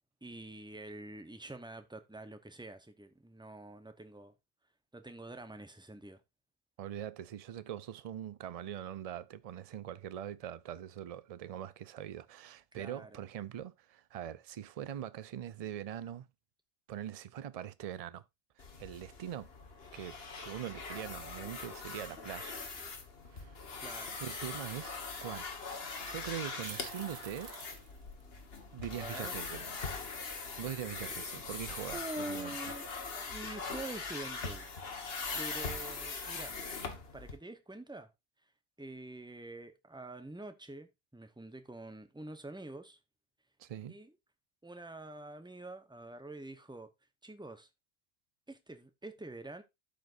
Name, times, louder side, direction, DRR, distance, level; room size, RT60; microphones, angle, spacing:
voice 1, 0.2-4.3 4.9-6.2 12.7-13.1 23.8-24.2 28.9-29.3 31.9-32.8 33.2-34.7 35.0-36.6 37.1-38.1 38.8-43.0 43.9-44.1 44.6-46.9 47.2-47.7 48.5-49.6, right 2 dB, 5° right, 0.7 m, -46 dB
voice 2, 6.8-16.3 16.9-18.2 18.8-19.5 19.9-22.6 23.3-23.6 24.2-25.5 26.0-27.5 28.7-29.7 30.6-32.6 35.2-35.3 43.6-44.0, right 10 dB, 50° right, 0.4 m, -42 dB
sound 1, 18.6-37.4, left 4 dB, 60° left, 1.6 m, -42 dB
sound 2, 26.1-28.6, right 7 dB, 90° right, 1.2 m, -50 dB
12.0 x 5.1 x 2.5 m
omnidirectional pair, 1.1 m